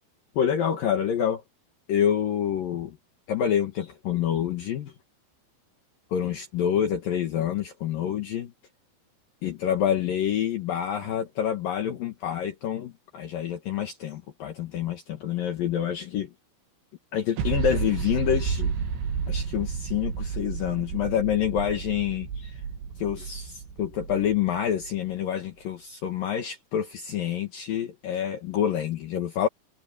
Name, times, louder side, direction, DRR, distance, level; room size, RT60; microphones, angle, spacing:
voice 1, 0.4-1.4 1.9-3.0 3.3-4.9 6.1-8.5 9.4-16.3 17.1-18.7 19.3-22.5 23.0-29.5, left 9 dB, 60° left, 2.9 m, -27 dB
sound 1, 17.4-24.9, right 6 dB, 90° right, 4.7 m, -31 dB
omnidirectional pair, 5.0 m